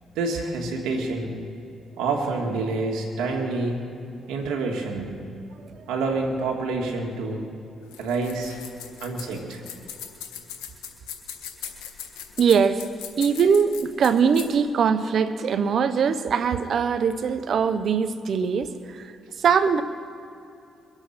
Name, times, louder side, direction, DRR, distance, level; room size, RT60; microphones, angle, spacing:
voice 1, 0.2-1.3 2.0-3.8 4.3-5.1 5.9-7.4 8.0-8.6 9.0-9.6, right 3 dB, 85° right, 1 dB, 1.9 m, -27 dB
sound 1, 7.8-14.6, left 9 dB, 90° left, 1.6 m, -39 dB
voice 2, 12.4-12.8 13.2-19.0 19.4-19.8, right 6 dB, 60° right, 12 dB, 0.9 m, -22 dB
22.5 x 8.1 x 5.7 m, 2.7 s
supercardioid pair, 65°, 0 cm